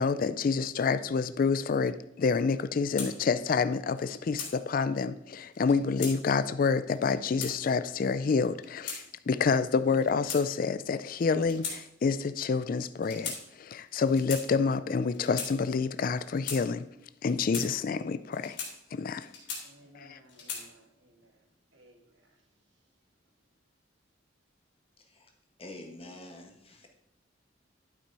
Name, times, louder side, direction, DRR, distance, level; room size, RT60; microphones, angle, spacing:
voice 1, 0.0-16.8 17.2-18.6 18.9-19.3 19.9-20.2, left 5 dB, 50° left, 13 dB, 0.4 m, -28 dB
sound 1, 3.0-3.1 4.0-4.5 5.5-6.2 6.9-7.5 8.4-9.0 9.9-10.8 11.4-11.8 12.1-12.3 13.0-13.4 14.1-14.4 15.1-15.5 16.2-16.6 17.3-17.7 18.3-18.7 19.2-19.9 20.3-20.7, left 5 dB, 70° left, 3.2 m, -38 dB
voice 2, 19.6-21.4 21.7-22.4, right 1 dB, 75° right, 2 dB, 2.1 m, -59 dB
voice 3, 25.0-25.3 25.6-26.9, left 1 dB, 30° left, 2 dB, 1.4 m, -47 dB
11.5 x 6.0 x 4.7 m, 0.78 s
head